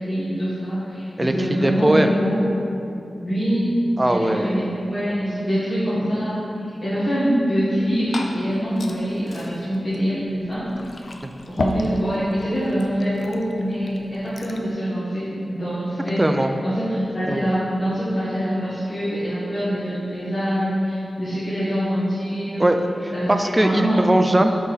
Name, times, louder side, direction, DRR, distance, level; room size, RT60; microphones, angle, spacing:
voice 1, 0.0-2.4 3.2-3.7 4.1-6.4 6.8-10.7 11.1-11.2 11.5-22.6 23.1-23.3 23.6-24.0 24.3-24.5, equal, 30° left, -12 dB, 1.3 m, -24 dB
voice 2, 1.6-2.1 4.0-4.6 16.2-16.5 17.3-17.5 22.6-24.5, right 1 dB, 15° right, 6 dB, 0.3 m, -20 dB
Glass / Fill (with liquid), 7.6-14.7, left 2 dB, 55° left, 0.4 m, -34 dB
6.5 x 4.1 x 3.9 m, 2.8 s
wide cardioid pair, 125°, 0 cm